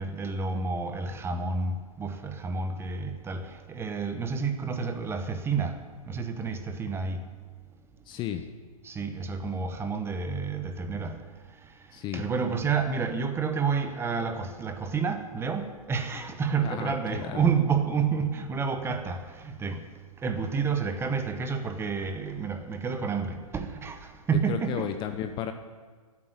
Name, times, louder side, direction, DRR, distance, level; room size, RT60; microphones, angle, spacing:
voice 1, 0.0-5.8 6.1-7.2 8.8-11.1 12.1-19.8 20.2-24.9, right 5 dB, 15° right, 1.0 m, -29 dB
voice 2, 8.1-8.5 11.9-12.2 16.6-17.5 24.3-25.5, left 10 dB, 25° left, 0.8 m, -33 dB
11.0 x 9.2 x 9.4 m
hypercardioid pair, 125°, 19 cm